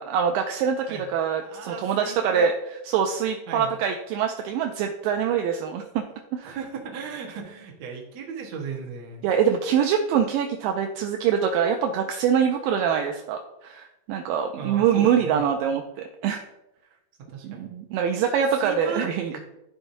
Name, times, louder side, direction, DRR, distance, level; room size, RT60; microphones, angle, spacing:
voice 1, 0.0-2.5 2.9-6.0 6.3-6.6 9.2-16.4 17.4-19.4, right 8 dB, 85° right, 4 dB, 2.0 m, -24 dB
voice 2, 1.3-2.5 3.5-3.8 6.4-9.3 14.6-15.5 17.3-17.7 18.5-19.0 19.3-19.4, right 5 dB, 60° right, -1 dB, 2.0 m, -36 dB
11.0 x 5.8 x 2.6 m, 0.92 s
omnidirectional pair, 4.4 m